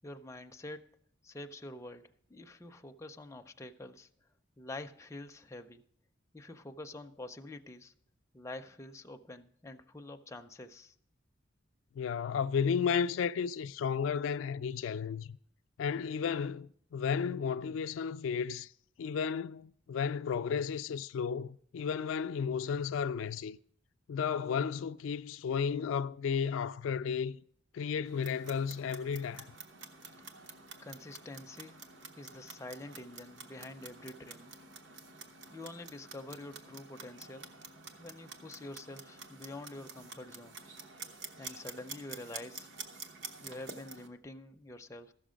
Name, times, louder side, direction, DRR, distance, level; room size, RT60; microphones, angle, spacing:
voice 1, 0.0-0.9 1.2-4.1 4.6-5.8 6.3-7.9 8.3-10.9 30.8-31.8 32.2-34.5 35.5-37.5 38.0-40.6 41.4-42.7 43.4-45.1, left 2 dB, 15° left, 0.4 m, -47 dB
voice 2, 11.9-15.4 15.8-18.7 19.0-23.6 24.1-27.4 27.7-29.5, left 6 dB, 85° left, 0.3 m, -33 dB
Clock, 28.0-44.1, right 4 dB, 70° right, 1.0 m, -49 dB
14.5 x 6.4 x 5.0 m
head